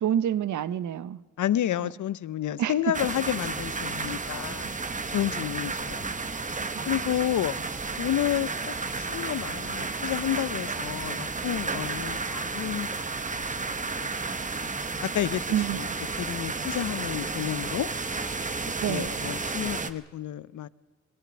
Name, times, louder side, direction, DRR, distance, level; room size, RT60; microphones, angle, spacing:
voice 1, 0.0-1.2 2.6-2.7 6.6-6.8 15.5-15.8 18.8-19.1, right 10 dB, 85° right, 0.8 m, -27 dB
voice 2, 1.4-4.7 5.1-6.1 6.9-7.5 8.0-13.0 14.0-14.1 15.0-15.9 16.2-17.9 18.9-20.7, left 12 dB, 80° left, 0.7 m, -30 dB
sound 1, 2.9-19.9, right 4 dB, 25° right, 1.0 m, -32 dB
21.0 x 18.0 x 9.7 m
cardioid pair, 100°, 29 cm